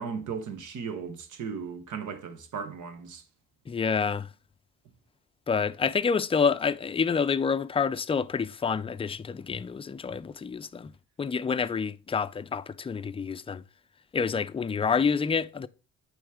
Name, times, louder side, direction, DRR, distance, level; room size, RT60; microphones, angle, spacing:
voice 1, 0.0-3.2, right 6 dB, 75° right, 1.2 m, -36 dB
voice 2, 3.7-4.3 5.5-10.9 11.2-13.6 14.1-15.7, left 6 dB, 20° left, 0.4 m, -28 dB
9.1 x 3.2 x 4.8 m
cardioid pair, 90°, 30 cm